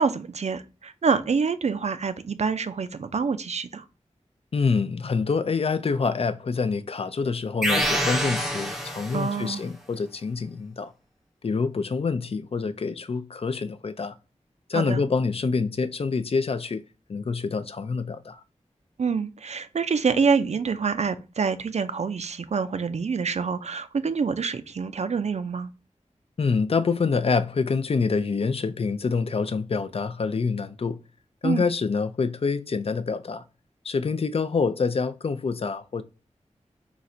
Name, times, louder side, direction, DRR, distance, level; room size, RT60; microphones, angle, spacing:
voice 1, 0.0-3.8 9.1-9.6 14.7-15.0 19.0-25.7 31.4-31.6, right 5 dB, 60° right, 0.4 m, -26 dB
voice 2, 4.5-10.9 11.4-14.1 14.7-16.8 17.1-18.4 26.4-31.0 31.4-33.4 33.8-36.0, left 4 dB, 50° left, 0.4 m, -26 dB
sound 1, 7.6-9.5, equal, 5° right, 0.6 m, -26 dB
4.0 x 2.4 x 4.2 m
wide cardioid pair, 65°, 12 cm